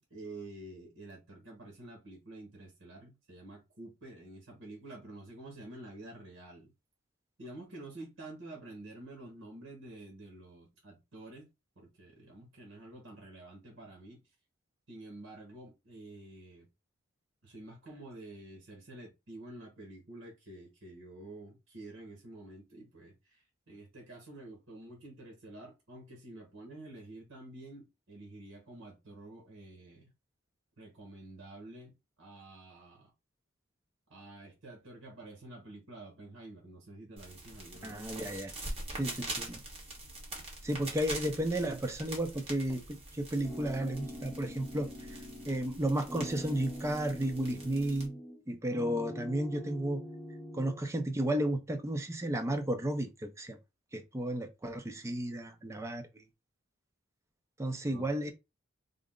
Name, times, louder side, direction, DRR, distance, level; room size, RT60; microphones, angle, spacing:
voice 1, 0.0-6.7 7.4-11.5 11.8-14.2 14.9-16.7 17.4-30.1 30.8-33.1 34.1-38.0 57.9-58.3, right 2 dB, 75° right, 1.3 m, -49 dB
sound 1, 37.2-48.1, right 2 dB, 30° right, 1.2 m, -44 dB
voice 2, 37.8-38.5 38.9-39.6 40.6-44.9 45.5-48.1 48.5-50.0 50.5-53.6 53.9-56.2 57.6-58.3, right 1 dB, 15° right, 0.4 m, -33 dB
sound 2, 43.4-45.8 46.1-48.4 48.7-50.8, equal, 5° left, 0.8 m, -43 dB
3.7 x 2.1 x 3.6 m
head